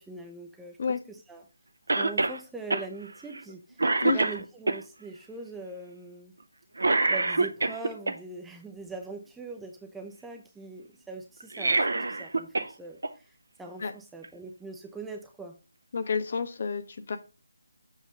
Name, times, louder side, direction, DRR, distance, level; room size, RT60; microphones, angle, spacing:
voice 1, 0.0-0.8 1.1-1.4 2.0-6.3 7.1-15.5, right 3 dB, 5° right, 3 dB, 0.5 m, -42 dB
Cough, 1.9-2.4 2.7-2.9 3.3-3.5 3.8-4.8 6.8-8.1 11.4-12.7 13.0-13.1 14.2-14.3, right 3 dB, 60° right, 0.7 m, -25 dB
voice 2, 15.9-17.2, left 5 dB, 40° left, 9 dB, 0.8 m, -29 dB
7.3 x 3.0 x 5.5 m, 0.32 s
figure-of-eight pair, 150°, 0 cm